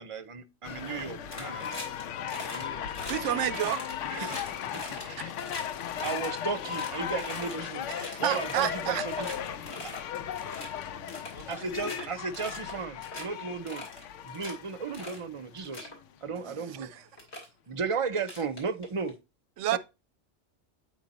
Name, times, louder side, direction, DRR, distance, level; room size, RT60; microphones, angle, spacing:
voice 1, 0.0-1.9 3.3-3.4 4.1-4.4 4.7-5.1 6.0-7.9 8.2-9.3 11.5-13.9 14.2-15.9 16.2-16.9 17.7-19.1 19.6-19.8, right 5 dB, 35° right, 0.6 m, -35 dB
sound 1, 0.6-15.7 16.3-16.4, left 9 dB, 85° left, 0.9 m, -37 dB
sound 2, 1.3-2.0 2.3-2.6 2.9-3.1 3.5-5.6 5.9-7.5 7.9-8.8 9.1-9.4 9.7-10.0 10.3-10.7 11.1-12.0 12.3-12.7 13.0-13.3 13.7-14.5 14.9-15.2 15.6-15.9 16.8-16.9 17.2-17.5 18.2-19.1, left 1 dB, 65° left, 3.0 m, -41 dB
voice 2, 2.4-3.6 4.1-6.0 8.6-8.7 9.2-12.1 13.2-13.7 15.6-16.2, left 4 dB, 15° left, 0.8 m, -49 dB
voice 3, 3.1-3.8 4.2-4.4 5.2-5.3 7.9-9.0 16.4-17.0 19.6-19.8, right 12 dB, 85° right, 0.9 m, -31 dB
8.2 x 4.7 x 4.1 m
omnidirectional pair, 1.2 m